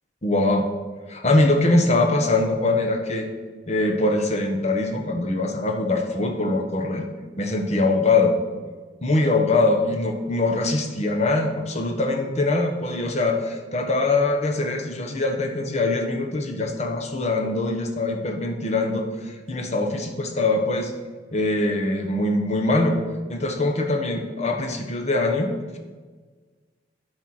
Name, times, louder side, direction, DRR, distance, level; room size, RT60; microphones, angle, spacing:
voice 1, 0.2-0.7 1.1-3.3 3.7-7.1 7.4-8.3 9.0-20.9 21.3-23.0 23.3-25.8, left 2 dB, 40° left, 3 dB, 1.1 m, -23 dB
11.0 x 4.5 x 6.4 m, 1.4 s
head